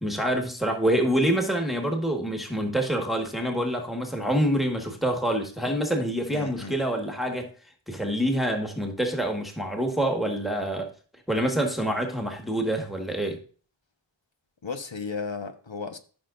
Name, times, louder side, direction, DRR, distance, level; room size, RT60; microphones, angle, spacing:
voice 1, 0.0-7.5 7.9-10.9 11.3-13.4, right 1 dB, ahead, 1.7 m, -26 dB
voice 2, 6.3-6.8 14.6-16.0, left 5 dB, 75° left, 1.4 m, -34 dB
15.0 x 6.0 x 2.6 m
wide cardioid pair, 50°, 46 cm